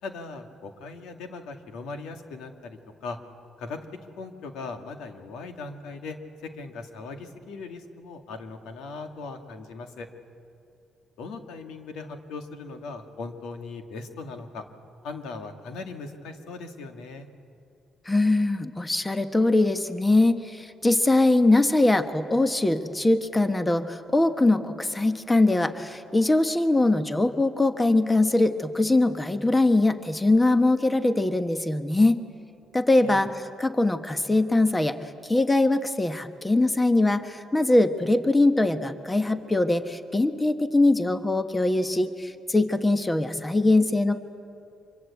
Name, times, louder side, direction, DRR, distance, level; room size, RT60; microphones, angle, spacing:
voice 1, 0.0-3.2 3.6-3.8 4.2-6.2 6.4-10.1 11.2-14.6 15.0-17.3 33.0-33.2, left 3 dB, 90° left, 6 dB, 2.1 m, -39 dB
voice 2, 18.0-32.2 32.7-35.0 35.2-44.2, left 2 dB, 15° left, 9 dB, 1.3 m, -22 dB
25.0 x 23.5 x 8.4 m, 2.6 s
cardioid pair, 90°, 0 cm